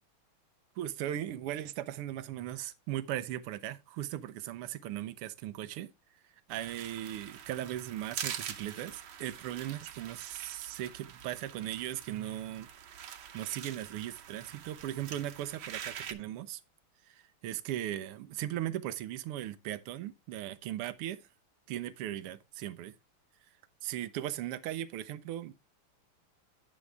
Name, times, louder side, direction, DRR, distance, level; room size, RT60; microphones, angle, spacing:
voice 1, 0.8-5.9 6.5-12.7 13.3-16.6 17.1-21.2 21.7-22.9 23.8-25.5, right 12 dB, 85° right, 1.6 m, -38 dB
sound 1, 6.5-16.1, right 9 dB, 70° right, 1.7 m, -45 dB
11.0 x 6.4 x 3.3 m
omnidirectional pair, 2.4 m